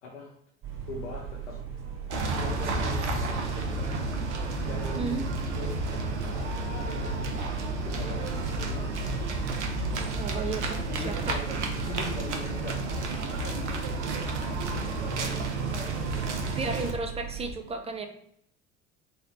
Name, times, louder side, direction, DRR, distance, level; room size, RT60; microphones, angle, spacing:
voice 1, 0.0-0.4 0.8-1.6 2.1-4.0 4.6-5.2 5.5-7.5 7.8-9.3 10.7-12.8 13.1-14.3 14.6-15.4, left 3 dB, 85° left, -3 dB, 0.8 m, -42 dB
sound 1, 0.6-17.5, right 7 dB, 40° right, 0.9 m, -39 dB
sound 2, 2.1-16.9, right 3 dB, 85° right, 0.5 m, -32 dB
sound 3, 2.3-11.2, left 3 dB, 40° left, 0.5 m, -39 dB
voice 2, 5.0-5.3 10.2-10.8 11.0-11.3 16.6-18.1, right 4 dB, 20° right, 4 dB, 0.7 m, -33 dB
3.2 x 2.5 x 4.4 m, 0.73 s
figure-of-eight pair, 60°, 34 cm